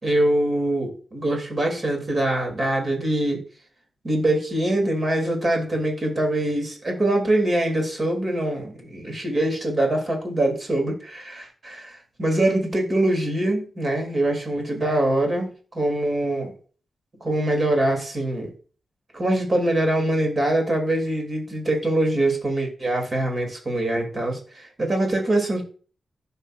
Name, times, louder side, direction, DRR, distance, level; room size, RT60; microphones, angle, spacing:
voice 1, 0.0-3.4 4.0-16.5 17.2-18.5 19.1-25.6, right 1 dB, 35° right, 2 dB, 2.9 m, -23 dB
15.5 x 5.6 x 2.5 m, 0.39 s
wide cardioid pair, 140°, 0 cm